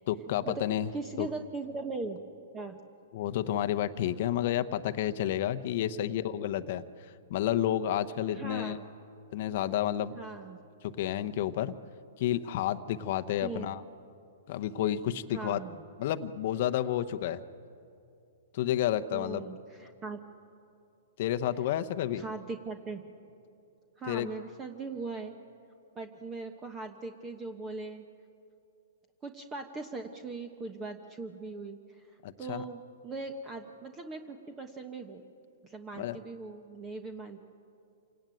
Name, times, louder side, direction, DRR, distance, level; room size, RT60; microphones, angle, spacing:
voice 1, 0.1-0.9 1.2-1.3 3.1-6.8 7.3-8.8 9.3-10.2 10.8-11.7 12.2-13.8 14.5-15.6 16.0-17.4 18.5-19.4 21.2-22.2 24.1-24.3 32.2-32.6 36.0-36.2, left 11 dB, 50° left, 10 dB, 0.9 m, -30 dB
voice 2, 0.9-2.2 2.5-2.8 8.3-8.8 10.2-10.6 13.4-13.7 15.3-15.8 19.1-20.2 22.1-23.0 24.0-25.3 25.9-28.0 29.2-31.8 32.4-35.2 35.6-37.4, right 3 dB, 20° right, 6 dB, 1.2 m, -40 dB
27.0 x 18.5 x 9.2 m, 2.6 s
hypercardioid pair, 135°, 0 cm